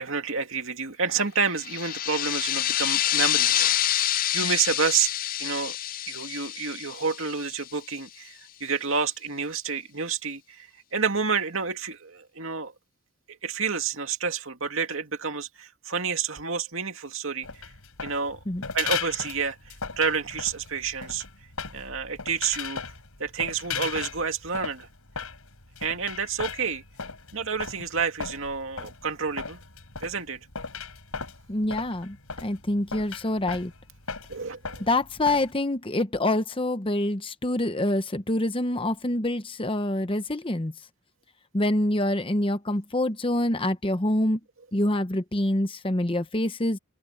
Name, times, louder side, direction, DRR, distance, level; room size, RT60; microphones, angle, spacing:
voice 1, 0.0-4.0 4.3-5.1 5.4-5.8 6.1-12.7 13.4-17.5 18.0-18.4 18.7-21.2 21.7-22.8 23.2-24.9 25.8-26.8 27.3-29.6 30.0-30.4 34.3-34.7, right 5 dB, 65° right, 2.5 m, -29 dB
sound 1, 1.6-7.9, left 12 dB, 40° left, 0.5 m, -27 dB
sound 2, 17.4-35.5, left 6 dB, 80° left, 5.0 m, -37 dB
voice 2, 31.5-33.7 34.8-40.7 41.5-44.4 44.7-46.8, left 1 dB, 25° left, 0.9 m, -26 dB
open air
head